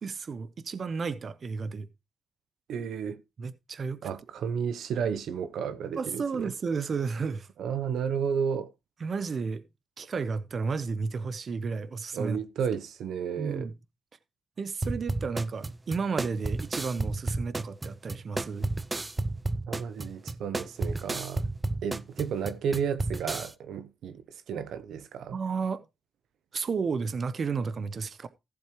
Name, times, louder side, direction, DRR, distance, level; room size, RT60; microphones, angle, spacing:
voice 1, 0.0-1.9 3.4-4.0 6.0-7.5 9.0-9.6 10.0-12.4 13.4-13.7 14.6-18.7 25.3-25.8 26.5-28.3, right 5 dB, 50° right, 0.8 m, -32 dB
voice 2, 2.7-3.2 4.0-6.5 7.6-8.7 12.1-13.7 19.7-21.5 21.8-25.4, right 7 dB, 85° right, 0.7 m, -32 dB
sound 1, 14.8-23.5, right 2 dB, 20° right, 0.5 m, -32 dB
15.0 x 7.1 x 3.1 m
cardioid pair, 100°, 0 cm